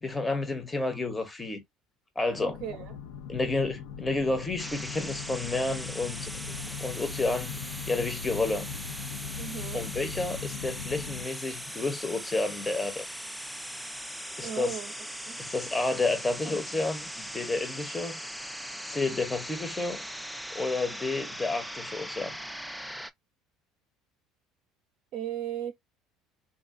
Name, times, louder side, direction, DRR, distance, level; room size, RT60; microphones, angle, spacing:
voice 1, 0.0-1.6 2.2-2.6 3.3-6.3 6.8-7.5 7.9-8.7 9.7-13.0 14.4-14.8 15.4-18.2 18.8-20.0 20.5-22.3, left 3 dB, 20° left, 0.8 m, -30 dB
sound 1, 2.4-11.3, left 7 dB, 80° left, 0.5 m, -40 dB
voice 2, 2.4-2.9 9.4-9.8 14.4-14.9 15.3-15.4 25.1-25.7, right 10 dB, 55° right, 0.5 m, -36 dB
sound 2, 4.6-23.1, equal, ahead, 0.3 m, -40 dB
3.7 x 2.2 x 2.4 m
hypercardioid pair, 70°, 0 cm